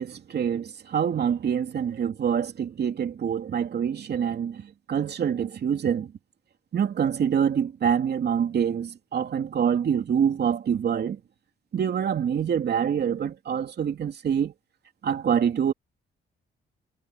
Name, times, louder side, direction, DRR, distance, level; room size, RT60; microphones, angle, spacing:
voice 1, 0.0-6.1 6.7-11.2 11.7-14.5 15.0-15.7, right 8 dB, 55° right, 2.9 m, -26 dB
cardioid pair, 90°, 20 cm